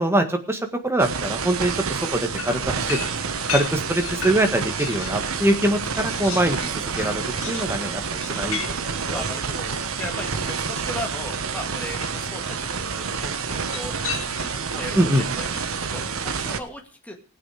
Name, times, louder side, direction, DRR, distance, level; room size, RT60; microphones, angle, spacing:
voice 1, 0.0-3.0 3.5-9.2 14.9-15.2, right 1 dB, 10° right, 5 dB, 1.7 m, -24 dB
sound 1, 1.0-16.6, right 5 dB, 85° right, 1.2 m, -28 dB
sound 2, 2.4-5.3 5.6-10.7 11.7-12.3 13.6-14.7, left 6 dB, 75° left, 2.6 m, -36 dB
voice 2, 9.1-14.0 14.7-15.6 15.9-17.1, left 1 dB, 5° left, 2 dB, 1.8 m, -37 dB
18.0 x 8.7 x 4.9 m, 0.38 s
head